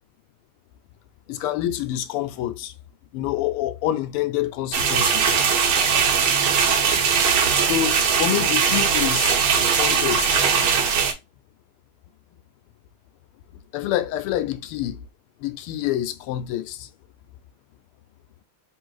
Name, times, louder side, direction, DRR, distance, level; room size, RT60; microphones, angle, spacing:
voice 1, 1.3-2.7 3.1-5.4 7.6-9.4 9.7-10.4 13.7-15.0 15.4-16.9, left 12 dB, 85° left, 1.5 m, -27 dB
sound 1, 4.7-11.1, right 6 dB, 75° right, 1.7 m, -20 dB
4.0 x 2.5 x 4.7 m
omnidirectional pair, 2.4 m